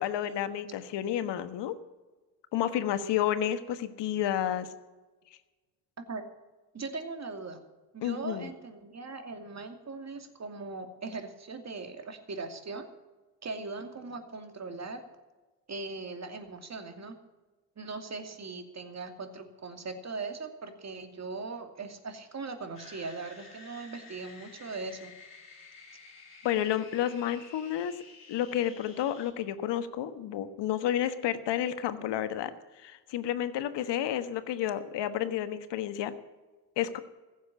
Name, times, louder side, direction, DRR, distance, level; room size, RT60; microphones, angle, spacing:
voice 1, 0.0-1.7 2.5-4.7 8.0-8.5 26.4-27.9 28.3-32.5 32.8-36.1 36.8-37.0, left 11 dB, 60° left, 12 dB, 1.4 m, -30 dB
voice 2, 6.7-7.6 7.9-12.9 13.4-15.0 15.7-17.2 17.8-25.1, right 3 dB, 35° right, 6 dB, 2.6 m, -40 dB
sound 1, 22.7-29.3, left 4 dB, 40° left, 4.8 m, -52 dB
15.5 x 7.4 x 9.8 m, 1.2 s
hypercardioid pair, 65°, 48 cm